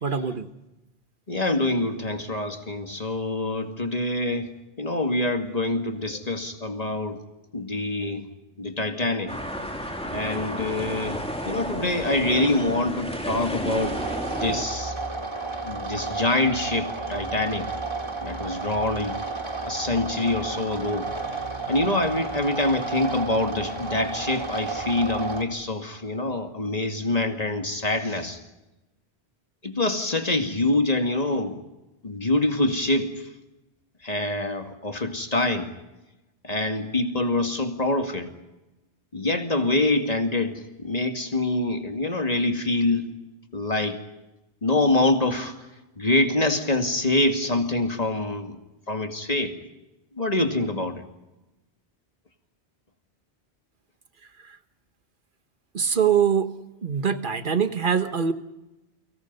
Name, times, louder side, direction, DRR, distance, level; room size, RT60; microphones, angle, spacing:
voice 1, 0.0-0.5 55.7-56.5 56.8-58.3, right 7 dB, 50° right, 10 dB, 1.3 m, -23 dB
voice 2, 1.3-4.5 4.8-7.2 7.5-8.3 8.6-9.3 10.1-14.0 14.4-14.9 15.6-17.7 18.2-19.2 19.6-21.1 21.7-28.4 29.6-31.6 32.0-33.1 34.0-35.7 36.4-38.3 39.1-43.0 43.5-44.0 44.6-45.5 46.0-48.6 48.9-49.5 50.2-51.0, left 2 dB, 35° left, 6 dB, 2.3 m, -25 dB
sound 1, 9.3-14.6, equal, 5° left, 3.0 m, -32 dB
sound 2, 13.8-25.4, right 3 dB, 25° right, 2.6 m, -32 dB
29.5 x 24.5 x 5.5 m, 1.0 s
omnidirectional pair, 1.1 m